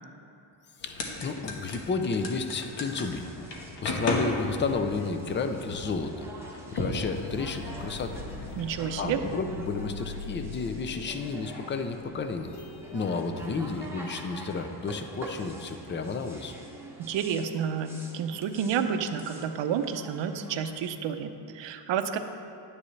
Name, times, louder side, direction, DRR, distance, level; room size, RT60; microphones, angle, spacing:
sound 1, 0.8-8.9, left 2 dB, 60° left, 1.4 m, -36 dB
voice 1, 0.8-3.3 3.5-6.3 6.7-8.2 9.0-12.5 12.9-16.5, left 4 dB, 25° left, 7 dB, 0.5 m, -32 dB
sound 2, 2.7-20.9, right 1 dB, 5° right, 0.9 m, -47 dB
sound 3, 7.1-13.7, left 3 dB, 80° left, 1.4 m, -43 dB
voice 2, 8.5-9.2 17.0-22.2, right 7 dB, 65° right, 8 dB, 0.7 m, -30 dB
10.0 x 9.6 x 3.2 m, 2.8 s
cardioid pair, 135°, 48 cm